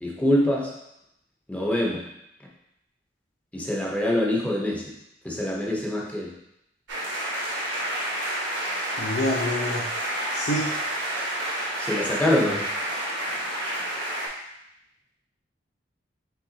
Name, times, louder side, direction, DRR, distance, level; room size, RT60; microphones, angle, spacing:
voice 1, 0.0-0.7 1.5-2.0 3.5-4.8 5.2-6.3 11.8-12.7, left 1 dB, 10° left, -3 dB, 0.7 m, -24 dB
sound 1, 6.9-14.3, right 1 dB, 90° right, 1.2 m, -29 dB
voice 2, 9.0-9.9 10.3-10.7, left 1 dB, 70° left, -5 dB, 0.7 m, -26 dB
5.6 x 3.2 x 2.7 m, 0.83 s
head